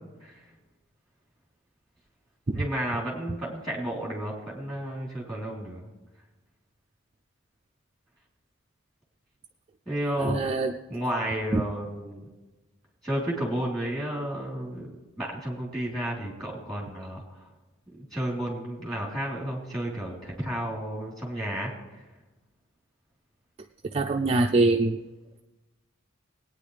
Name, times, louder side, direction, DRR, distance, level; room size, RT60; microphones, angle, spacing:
voice 1, 2.5-5.9 9.9-10.4 10.9-12.2 13.0-14.9 15.2-17.5 17.9-22.0, right 1 dB, ahead, -4 dB, 3.6 m, -32 dB
voice 2, 10.2-10.7 11.5-11.6 23.9-25.0, right 2 dB, 30° right, 4 dB, 0.4 m, -23 dB
20.0 x 9.4 x 3.3 m, 1.1 s
head